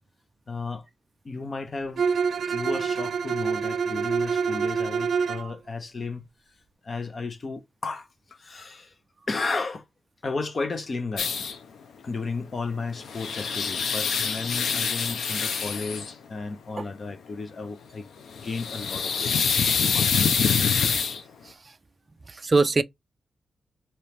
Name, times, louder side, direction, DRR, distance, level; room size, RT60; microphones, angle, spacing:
voice 1, 0.5-0.9 1.2-2.0 2.5-6.3 6.8-8.9 9.3-9.8 10.2-11.5 12.0-18.1 18.4-19.3 19.8-20.3, left 4 dB, 35° left, 0.7 m, -33 dB
Bowed string instrument, 2.0-5.5, right 6 dB, 65° right, 0.6 m, -26 dB
sound 1, 11.2-11.6 12.8-16.1 18.3-21.2, left 6 dB, 85° left, 0.6 m, -25 dB
voice 2, 22.3-22.8, right 3 dB, 25° right, 0.3 m, -24 dB
4.3 x 3.0 x 3.4 m
wide cardioid pair, 165°, 0 cm